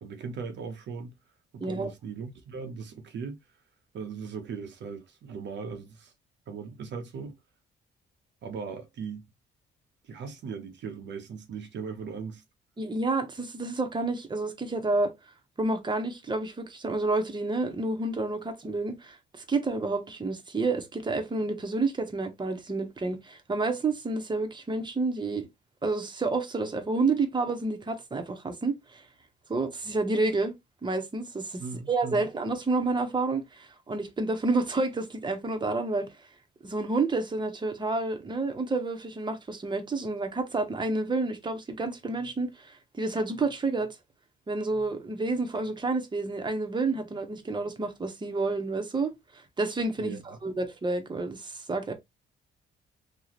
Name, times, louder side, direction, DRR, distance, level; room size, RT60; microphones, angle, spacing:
voice 1, 0.0-1.1 1.5-3.4 3.9-6.1 6.5-7.3 8.4-9.3 10.0-12.4 31.6-32.2 50.0-50.4, right 5 dB, 65° right, 0.9 m, -38 dB
voice 2, 12.8-15.1 15.6-19.2 19.5-25.5 25.8-29.0 29.5-30.5 30.8-31.6 31.9-36.1 36.6-43.9 44.5-51.9, right 3 dB, 25° right, 1.0 m, -29 dB
3.1 x 2.3 x 4.0 m
cardioid pair, 90°, 20 cm